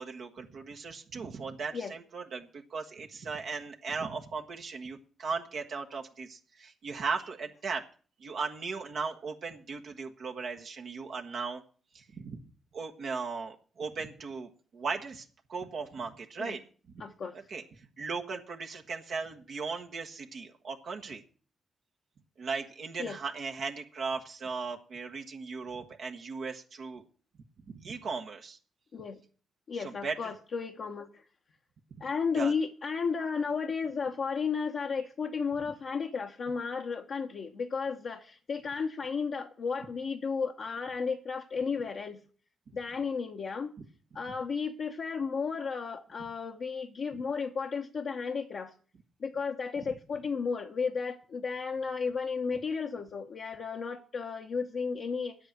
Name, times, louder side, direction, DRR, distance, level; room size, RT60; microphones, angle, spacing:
voice 1, 0.0-7.8 8.2-11.6 11.9-12.4 12.7-16.6 17.5-21.2 22.4-27.0 27.7-28.6 29.8-30.3 32.3-32.5, right 4 dB, 65° right, 2 dB, 1.2 m, -37 dB
voice 2, 17.0-17.4 23.0-23.2 28.9-29.2 29.7-31.2 32.0-42.2 42.7-43.7 44.1-48.7 49.2-55.4, left 5 dB, 65° left, -1 dB, 1.1 m, -33 dB
9.1 x 8.5 x 7.4 m, 0.41 s
hypercardioid pair, 45°, 0 cm